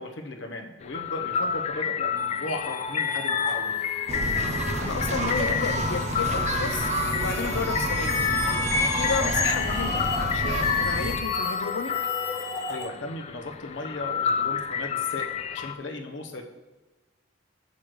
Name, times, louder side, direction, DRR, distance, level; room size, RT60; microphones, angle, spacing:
voice 1, 0.0-3.7 12.7-16.4, left 2 dB, 75° left, 0.9 m, -36 dB
sound 1, 0.8-15.7, left 7 dB, 35° left, 0.3 m, -30 dB
sound 2, 2.2-12.8, left 2 dB, 15° left, 1.3 m, -33 dB
sound 3, 4.1-11.2, right 2 dB, 40° right, 0.7 m, -30 dB
voice 2, 4.8-8.4 8.9-12.0, left 5 dB, 90° left, 0.5 m, -32 dB
8.2 x 6.5 x 3.1 m
head